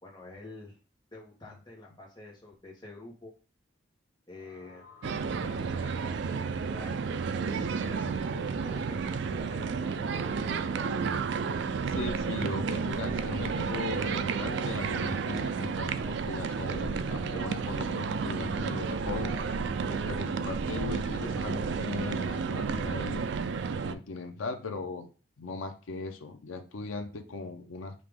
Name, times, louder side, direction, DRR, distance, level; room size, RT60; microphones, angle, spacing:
voice 1, 0.0-0.8 1.1-3.3 4.3-4.9 5.4-7.2 7.8-10.6, left 2 dB, 20° left, -2 dB, 1.3 m, -48 dB
sound 1, 4.3-20.1, left 3 dB, 45° left, 0.8 m, -54 dB
sound 2, 5.0-23.9, right 5 dB, 60° right, 0.3 m, -31 dB
voice 2, 11.9-19.3 19.9-23.3 23.8-25.1 25.4-27.9, left 3 dB, 90° left, 6 dB, 0.5 m, -38 dB
5.1 x 2.9 x 3.5 m, 0.35 s
head